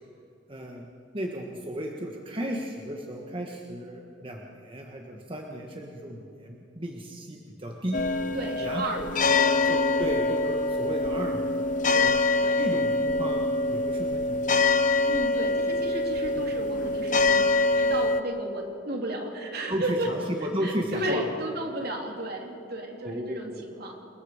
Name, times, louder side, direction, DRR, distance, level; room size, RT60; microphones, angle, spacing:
voice 1, 0.5-0.9 1.1-8.0 8.6-9.1 9.4-11.4 12.0-14.4 19.7-21.3 23.0-23.8, equal, 30° right, 0 dB, 1.6 m, -34 dB
sound 1, 7.9-18.2, left 3 dB, 45° left, 0.9 m, -25 dB
voice 2, 8.3-9.5 11.9-12.6 15.1-20.1 20.6-23.9, right 1 dB, 55° right, 1 dB, 3.3 m, -34 dB
28.5 x 21.5 x 5.1 m, 2.6 s
head